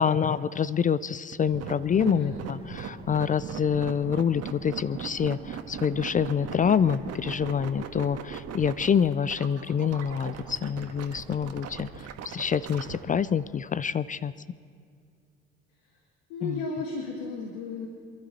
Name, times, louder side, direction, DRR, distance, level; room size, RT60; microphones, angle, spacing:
voice 1, 0.0-2.3 2.8-11.9 12.2-14.3 16.4-16.5, left 7 dB, 25° left, 18 dB, 0.4 m, -26 dB
sound 1, 1.3-13.0, right 8 dB, 55° right, 1.6 m, -38 dB
voice 2, 2.0-2.4 16.3-17.9, left 3 dB, 70° left, 2 dB, 1.8 m, -34 dB
27.0 x 12.0 x 4.2 m, 2.3 s
hypercardioid pair, 55°, 31 cm